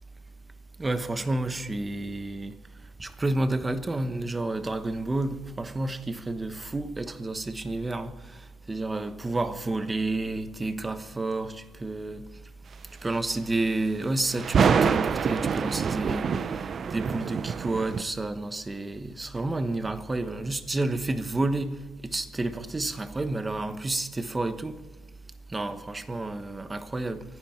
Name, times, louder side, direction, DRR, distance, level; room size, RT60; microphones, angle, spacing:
voice 1, 0.8-2.6 3.0-8.1 8.7-12.2 13.0-16.3 16.9-21.7 22.0-24.7 25.5-27.2, right 2 dB, 15° right, 1.1 m, -30 dB
sound 1, 14.3-18.0, right 6 dB, 40° right, 0.6 m, -25 dB
24.5 x 10.5 x 4.4 m
cardioid pair, 130°, 0 cm